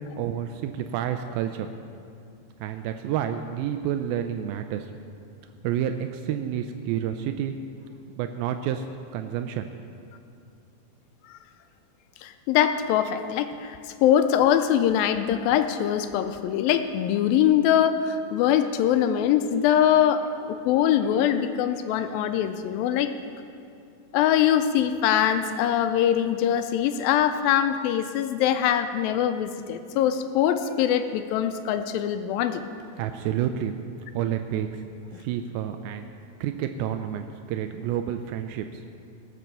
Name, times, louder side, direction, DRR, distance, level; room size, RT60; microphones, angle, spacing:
voice 1, 0.2-1.7 2.6-4.9 5.6-7.5 8.2-8.8 9.1-9.7 33.0-33.8 34.1-34.8 35.1-36.1 36.4-38.8, right 10 dB, 85° right, 7 dB, 2.4 m, -29 dB
voice 2, 12.2-23.1 24.1-32.6, left 10 dB, 80° left, 9 dB, 2.3 m, -23 dB
18.5 x 6.2 x 6.8 m, 2.5 s
omnidirectional pair, 4.2 m